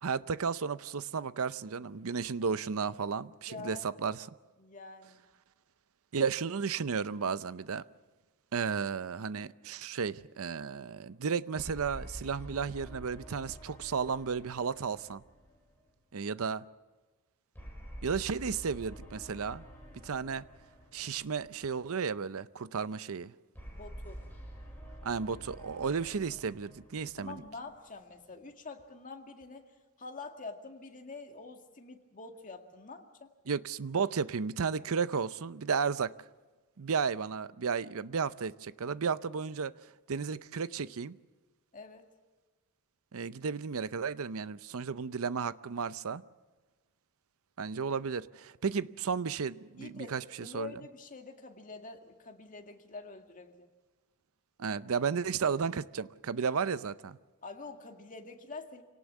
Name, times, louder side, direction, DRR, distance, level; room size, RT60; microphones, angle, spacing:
voice 1, 0.0-4.3 6.1-7.8 8.5-15.2 16.1-16.6 18.0-19.7 20.0-20.4 20.9-23.3 25.0-27.4 33.5-36.1 36.8-39.7 40.1-41.2 43.1-46.2 47.6-50.7 54.6-57.2, right 5 dB, 65° right, 0.6 m, -33 dB
voice 2, 3.5-3.8 4.6-5.3 23.7-24.2 27.2-29.7 30.0-33.3 41.7-42.1 49.8-53.7 57.4-58.8, left 3 dB, 35° left, 2.0 m, -46 dB
sound 1, 11.5-16.1 17.5-21.9 23.5-28.1, equal, 10° left, 6.4 m, -48 dB
27.0 x 18.0 x 7.2 m
head